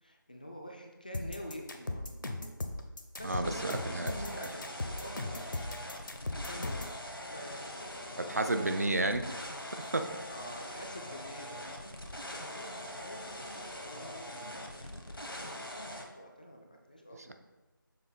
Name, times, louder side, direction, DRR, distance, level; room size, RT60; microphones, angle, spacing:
voice 1, 0.0-2.0 3.2-5.8 6.3-8.6 10.3-17.3, equal, 25° left, 2 dB, 0.4 m, -47 dB
sound 1, 1.1-7.0, left 2 dB, 60° left, 0.7 m, -37 dB
sound 2, 3.2-16.0, left 1 dB, 80° left, 1.1 m, -43 dB
voice 2, 3.2-4.1 8.3-10.1, right 2 dB, 45° right, 7 dB, 0.4 m, -32 dB
6.8 x 3.4 x 4.0 m, 1.1 s
figure-of-eight pair, 160°, 12 cm